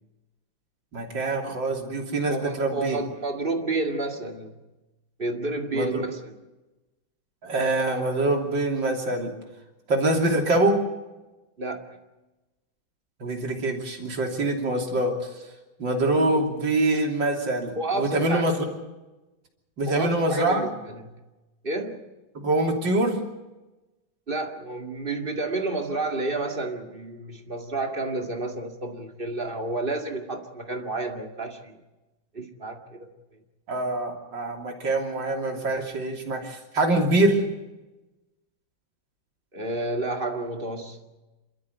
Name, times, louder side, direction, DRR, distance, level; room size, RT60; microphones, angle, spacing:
voice 1, 0.9-3.0 5.7-6.0 7.4-9.3 9.9-10.8 13.2-15.3 15.8-18.7 19.8-20.6 22.4-23.2 33.7-37.4, right 2 dB, 65° right, 3.8 m, -24 dB
voice 2, 2.3-4.6 5.2-6.4 11.6-12.0 17.7-18.5 19.8-21.2 21.6-22.1 24.3-31.8 32.3-33.1 39.5-41.0, right 2 dB, 25° right, 2.3 m, -30 dB
28.5 x 13.0 x 8.1 m
omnidirectional pair, 2.1 m